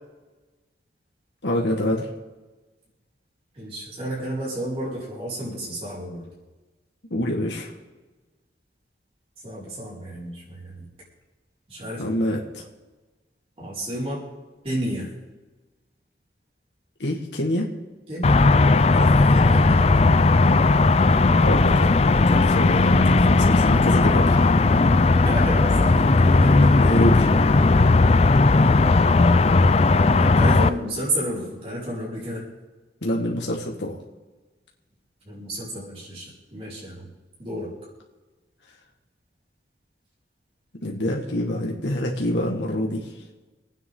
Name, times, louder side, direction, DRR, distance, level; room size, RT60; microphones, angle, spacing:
voice 1, 1.4-2.1 7.1-7.7 12.0-12.6 17.0-17.7 21.4-24.5 26.0-27.3 33.0-33.9 40.8-43.1, left 1 dB, 80° left, -1 dB, 1.8 m, -26 dB
voice 2, 3.5-6.2 9.4-10.9 11.7-12.1 13.6-14.2 14.6-15.1 18.1-18.4 18.9-19.9 25.0-26.7 28.6-28.8 30.1-32.4 35.2-37.1 37.4-37.7, equal, 35° right, -7 dB, 4.8 m, -31 dB
sound 1, 18.2-30.7, left 3 dB, 35° left, 0.4 m, -17 dB
26.5 x 9.4 x 3.9 m, 1.2 s
head